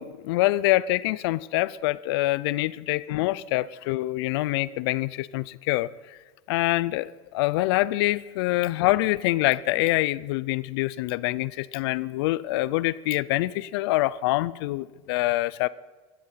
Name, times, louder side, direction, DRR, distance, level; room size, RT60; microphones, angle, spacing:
voice 1, 0.0-6.2 6.5-15.7, left 18 dB, 70° left, 20 dB, 0.5 m, -25 dB
14.5 x 14.5 x 5.7 m, 1.3 s
supercardioid pair, 145°, 13 cm